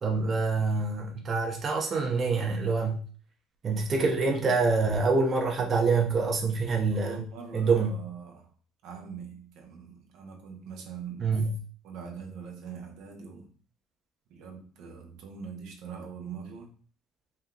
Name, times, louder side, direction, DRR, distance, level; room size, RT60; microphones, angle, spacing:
voice 1, 0.0-3.0 3.6-7.2 7.5-7.9 11.2-11.6, right 4 dB, 35° right, 0 dB, 0.8 m, -26 dB
voice 2, 6.9-8.5 8.8-11.3 11.8-13.5 14.3-16.7, right 6 dB, 70° right, 3 dB, 0.9 m, -42 dB
4.3 x 2.3 x 3.7 m, 0.41 s
supercardioid pair, 105°, 0 cm